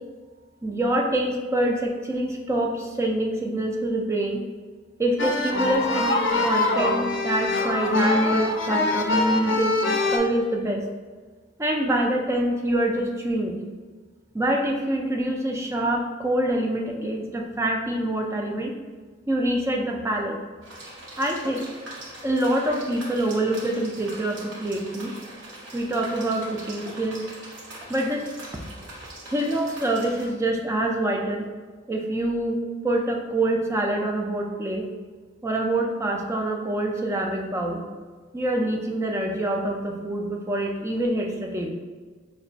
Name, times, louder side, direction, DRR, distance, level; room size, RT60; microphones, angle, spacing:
voice 1, 0.6-4.4 5.0-9.8 10.1-10.8 11.6-13.6 14.3-18.7 19.3-20.4 21.2-21.7 22.2-25.1 25.7-27.2 27.9-28.3 28.8-28.9 29.2-31.5 31.9-34.9 35.4-37.8 38.3-41.7, right 1 dB, 15° right, 1 dB, 0.3 m, -26 dB
sound 1, 5.2-10.2, left 2 dB, 60° left, 0.5 m, -23 dB
sound 2, 20.6-30.2, right 1 dB, 60° right, 0.9 m, -41 dB
5.0 x 2.2 x 2.4 m, 1.4 s
head